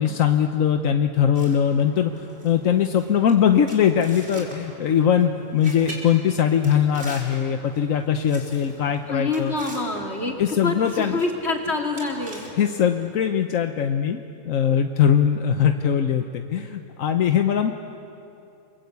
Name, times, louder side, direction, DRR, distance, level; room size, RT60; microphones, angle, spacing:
voice 1, 0.0-9.5 10.4-11.2 12.6-17.7, left 8 dB, 85° left, 6 dB, 1.3 m, -21 dB
sound 1, 1.3-13.1, right 1 dB, 50° right, 4.8 m, -43 dB
voice 2, 9.1-10.4 10.6-12.5, left 3 dB, 50° left, 1 dB, 3.2 m, -26 dB
29.0 x 23.0 x 8.3 m, 2.8 s
omnidirectional pair, 1.4 m